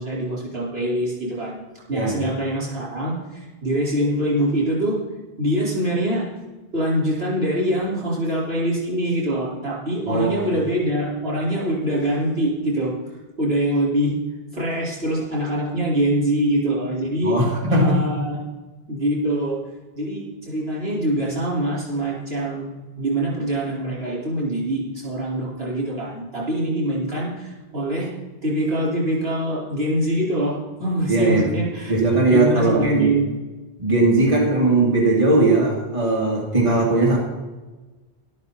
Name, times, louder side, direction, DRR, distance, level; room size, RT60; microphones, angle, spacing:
voice 1, 0.0-1.6 1.9-5.0 5.4-6.3 6.7-12.9 13.4-14.1 14.5-17.4 17.7-18.4 18.9-19.6 19.9-22.7 23.0-28.1 28.4-31.9 32.2-33.3, right 1 dB, 75° right, -6 dB, 5.0 m, -24 dB
voice 2, 10.1-10.5 17.2-18.0 31.1-31.5 31.9-33.1 33.8-37.2, right 2 dB, 30° right, -3 dB, 2.3 m, -19 dB
13.0 x 12.0 x 4.3 m, 1.2 s
omnidirectional pair, 1.0 m